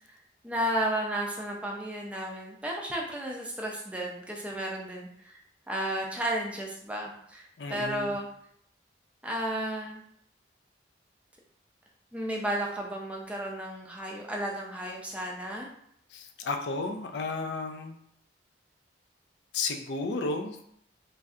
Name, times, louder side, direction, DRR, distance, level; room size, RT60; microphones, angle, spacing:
voice 1, 0.4-8.3 9.2-10.0 12.1-15.7, right 1 dB, 5° right, -2 dB, 0.4 m, -33 dB
voice 2, 7.6-8.1 16.1-18.0 19.5-20.7, left 3 dB, 65° left, 5 dB, 0.4 m, -33 dB
3.2 x 2.6 x 2.4 m, 0.68 s
head